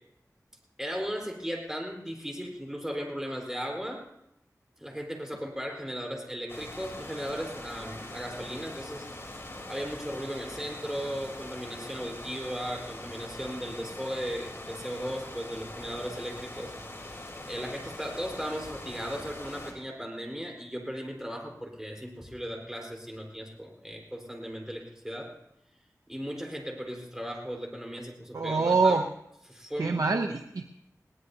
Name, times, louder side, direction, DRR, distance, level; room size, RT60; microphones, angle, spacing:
voice 1, 0.8-4.1 4.8-16.7 17.0-25.3 26.1-29.0 29.5-30.1, equal, 10° right, 1 dB, 4.3 m, -37 dB
sound 1, 6.5-19.7, left 1 dB, 40° left, 3.7 m, -42 dB
voice 2, 28.3-29.0 29.8-30.7, right 4 dB, 90° right, 4 dB, 0.7 m, -25 dB
21.0 x 18.0 x 2.8 m, 0.81 s
wide cardioid pair, 45°, 6 cm